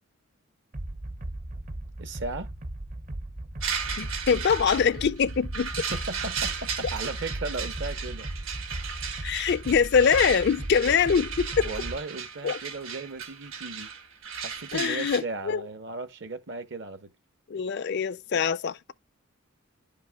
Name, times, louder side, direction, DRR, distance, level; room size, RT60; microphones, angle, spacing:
sound 1, 0.7-12.0, right 1 dB, 35° right, 0.7 m, -37 dB
voice 1, 2.0-2.5 5.9-8.3 11.6-13.9 14.4-17.1, right 3 dB, 60° right, 1.0 m, -36 dB
sound 2, 3.6-15.2, right 6 dB, 75° right, 2.1 m, -35 dB
voice 2, 4.0-5.7 9.2-11.7 12.4-12.6 14.7-15.7 17.5-18.9, left 6 dB, 55° left, 0.4 m, -24 dB
11.0 x 5.2 x 2.3 m
head